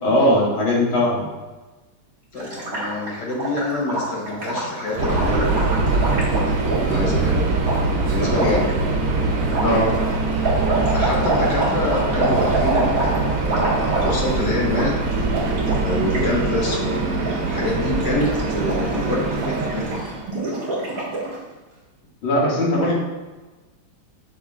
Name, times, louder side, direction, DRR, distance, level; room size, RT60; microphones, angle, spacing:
voice 1, 0.0-1.3 9.6-9.9 22.2-22.9, left 1 dB, 70° left, -6 dB, 2.8 m, -19 dB
voice 2, 2.3-5.7 6.5-7.7 8.1-8.7 10.9-13.7 14.0-15.0 15.8-19.9 22.8-22.9, left 2 dB, 55° left, -3 dB, 1.8 m, -26 dB
Gurgling, 2.4-7.0 7.6-7.8 8.3-8.7 9.5-14.4 14.7-14.9 15.1-16.3 16.6-16.8 17.1-17.7 17.9-21.4, right 2 dB, 40° right, 2.4 m, -26 dB
Subway metro underground, 5.0-20.3, right 3 dB, 80° right, 1.8 m, -23 dB
7.8 x 6.5 x 2.5 m, 1.2 s
omnidirectional pair, 2.3 m